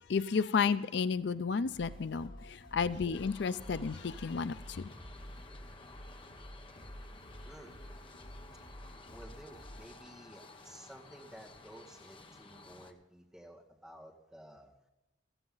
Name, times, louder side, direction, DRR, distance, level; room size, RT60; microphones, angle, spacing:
voice 1, 0.1-4.9, left 5 dB, 65° left, 0.4 m, -32 dB
sound 1, 1.7-9.9, equal, 45° left, 2.9 m, -50 dB
sound 2, 3.1-12.9, left 3 dB, 30° left, 1.2 m, -54 dB
voice 2, 9.1-14.7, right 1 dB, 5° right, 2.0 m, -53 dB
16.0 x 14.5 x 3.9 m
head